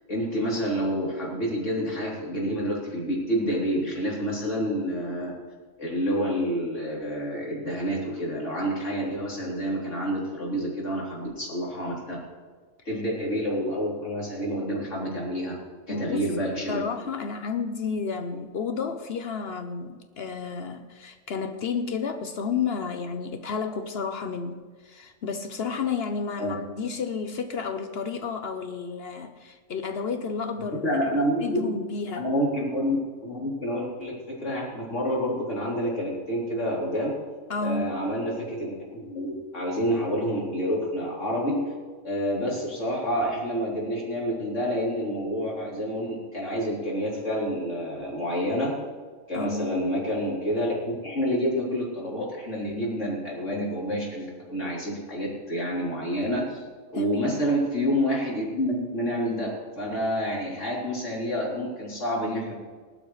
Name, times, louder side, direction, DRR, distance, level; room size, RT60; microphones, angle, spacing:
voice 1, 0.1-5.3 5.8-12.2 12.9-15.5 15.9-16.8 26.4-26.6 30.7-31.7 32.1-33.0 33.2-37.1 37.6-41.6 42.0-48.7 49.3-56.6 56.9-59.5 59.8-62.5, equal, 75° left, -4 dB, 3.8 m, -28 dB
voice 2, 15.9-16.3 16.7-32.3 37.5-38.0 49.3-49.7 56.9-57.4, left 5 dB, 60° left, 8 dB, 0.9 m, -31 dB
19.5 x 12.0 x 3.2 m, 1.5 s
omnidirectional pair, 1.3 m